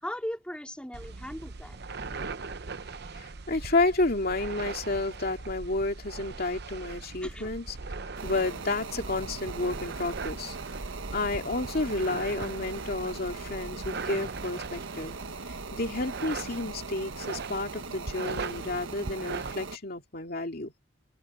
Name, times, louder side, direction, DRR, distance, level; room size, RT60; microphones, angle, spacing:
voice 1, 0.0-1.8 7.2-7.5, equal, 5° left, 3.4 m, -38 dB
sound 1, 0.9-19.5, right 4 dB, 55° right, 0.8 m, -40 dB
voice 2, 3.1-7.8 8.2-10.6 11.1-15.2 15.7-20.7, left 2 dB, 50° left, 2.5 m, -31 dB
sound 2, 8.2-19.8, right 4 dB, 80° right, 1.4 m, -40 dB
head